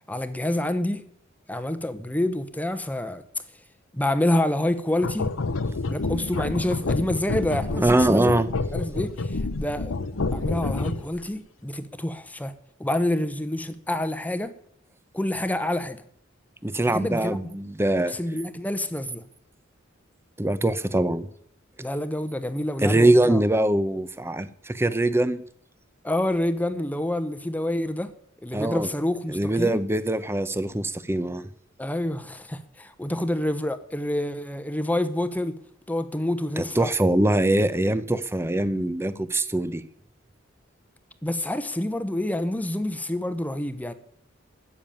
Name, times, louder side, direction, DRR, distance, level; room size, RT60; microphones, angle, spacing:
voice 1, 0.1-1.0 1.5-3.2 3.9-5.3 5.8-8.3 8.7-9.9 10.3-12.5 12.8-14.5 15.1-16.0 16.9-17.4 18.1-19.2 21.8-23.4 26.0-28.1 28.4-29.8 31.8-35.6 35.9-36.9 41.2-43.9, left 1 dB, 10° left, 0.9 m, -27 dB
sound 1, 5.0-11.2, left 3 dB, 90° left, 0.9 m, -28 dB
voice 2, 7.8-8.5 16.6-18.2 20.4-21.3 22.8-25.4 28.5-28.9 29.3-31.4 36.6-39.8, right 1 dB, 10° right, 0.7 m, -23 dB
14.0 x 7.2 x 9.1 m
head